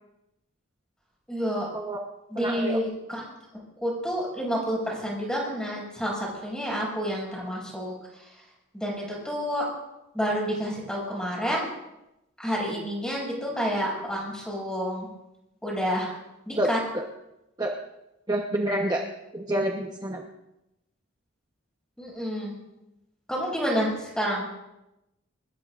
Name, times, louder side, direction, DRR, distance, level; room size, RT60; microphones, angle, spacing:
voice 1, 1.3-1.7 2.3-3.2 3.8-7.9 8.7-9.6 10.1-11.7 12.4-15.1 15.6-16.1 16.5-16.8 22.0-22.5 23.3-24.5, equal, 5° left, -4 dB, 6.8 m, -29 dB
voice 2, 2.3-2.8 16.6-16.7 16.9-17.0 17.6-17.7 18.3-19.0 19.3-20.2, right 1 dB, 20° right, 0 dB, 1.1 m, -27 dB
23.5 x 20.5 x 2.6 m, 0.90 s
head